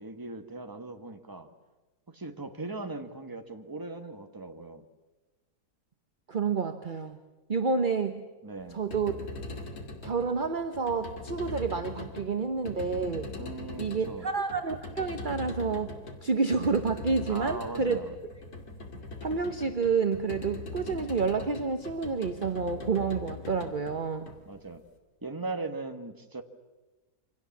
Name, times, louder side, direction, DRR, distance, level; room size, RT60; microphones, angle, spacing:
voice 1, 0.0-1.5 2.1-4.8 8.4-8.9 13.4-14.3 17.3-18.1 24.4-24.8 25.2-26.4, right 3 dB, 15° right, 7 dB, 1.4 m, -39 dB
voice 2, 6.3-7.2 7.5-8.2 8.7-9.2 10.0-13.3 13.8-15.9 16.2-18.0 19.2-24.3, right 5 dB, 35° right, 8 dB, 1.0 m, -29 dB
sound 1, 8.7-24.9, left 2 dB, 65° left, 3.1 m, -41 dB
28.0 x 25.0 x 7.3 m, 1.2 s
omnidirectional pair, 1.7 m